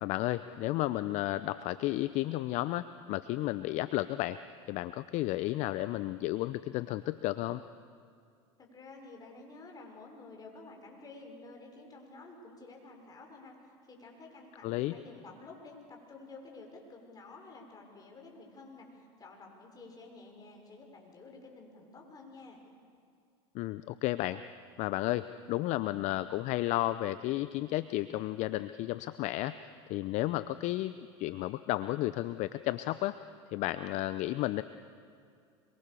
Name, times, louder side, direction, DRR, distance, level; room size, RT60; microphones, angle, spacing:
voice 1, 0.0-4.4 4.7-7.6 14.6-14.9 23.5-24.4 24.8-33.2 33.5-34.6, left 16 dB, 55° left, 13 dB, 0.7 m, -33 dB
voice 2, 8.6-22.6, left 3 dB, 25° left, 1 dB, 6.0 m, -51 dB
26.0 x 23.5 x 7.0 m, 2.3 s
hypercardioid pair, 100°, 15 cm